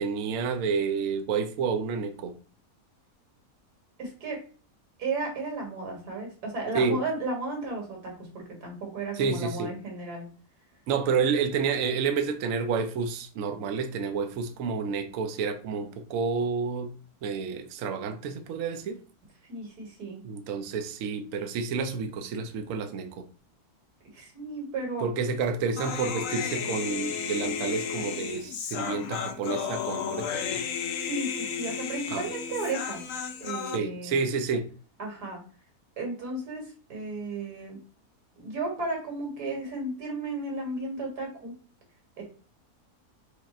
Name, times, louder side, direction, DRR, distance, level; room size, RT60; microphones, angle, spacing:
voice 1, 0.0-2.3 6.7-7.0 9.1-9.7 10.9-16.9 17.2-19.0 20.2-23.2 25.0-30.6 32.1-32.2 33.7-34.7, right 5 dB, 70° right, 0.9 m, -29 dB
voice 2, 4.0-4.4 5.0-10.3 19.5-20.2 24.1-25.1 31.1-33.0 33.4-34.2 35.0-35.4 36.0-37.8 38.4-41.5 42.2-42.3, right 2 dB, 90° right, 2.2 m, -34 dB
Human voice, 25.8-33.8, left 7 dB, 70° left, 0.9 m, -33 dB
4.9 x 2.4 x 4.2 m
omnidirectional pair, 1.6 m